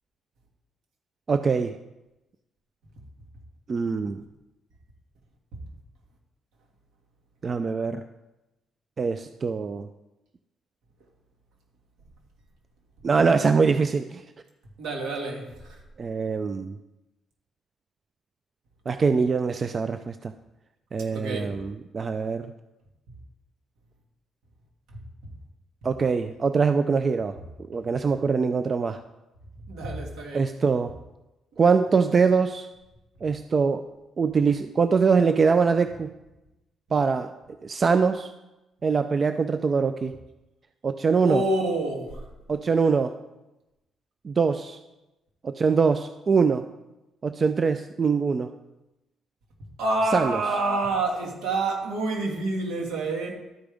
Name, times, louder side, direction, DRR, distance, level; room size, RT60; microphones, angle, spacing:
voice 1, 1.3-1.7 3.7-4.2 7.4-8.0 9.0-9.9 13.0-14.2 16.0-16.8 18.9-20.3 20.9-22.5 25.8-27.3 27.7-29.0 30.3-30.9 31.6-32.7 33.2-33.8 34.2-36.1 36.9-37.3 37.6-38.3 38.8-40.1 40.8-41.4 42.5-43.2 44.2-44.8 45.4-46.7 47.2-48.5 50.1-50.4, right 5 dB, 40° right, 9 dB, 0.3 m, -23 dB
voice 2, 14.8-15.8 21.1-21.6 24.9-25.0 29.6-30.5 41.2-42.3 49.8-53.3, right 2 dB, 80° right, 0 dB, 1.9 m, -28 dB
12.5 x 5.0 x 3.5 m, 0.99 s
cardioid pair, 90°, 0 cm